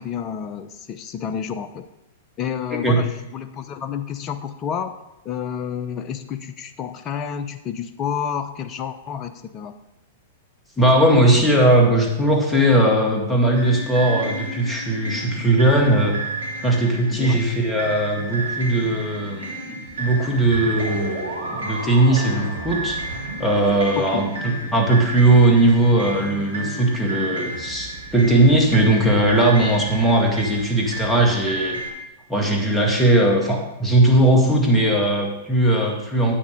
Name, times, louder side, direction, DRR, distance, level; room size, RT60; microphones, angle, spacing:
voice 1, 0.0-1.9 2.4-4.9 5.2-9.8 17.1-17.4 24.0-24.3, left 8 dB, 35° left, 10 dB, 0.7 m, -30 dB
voice 2, 10.8-16.2 16.6-23.0 23.4-31.8 32.3-36.4, right 1 dB, 10° left, 0 dB, 2.1 m, -18 dB
sound 1, 13.5-31.9, right 2 dB, 80° right, 2.0 m, -31 dB
9.9 x 8.4 x 3.9 m, 0.93 s
figure-of-eight pair, 105°, 0 cm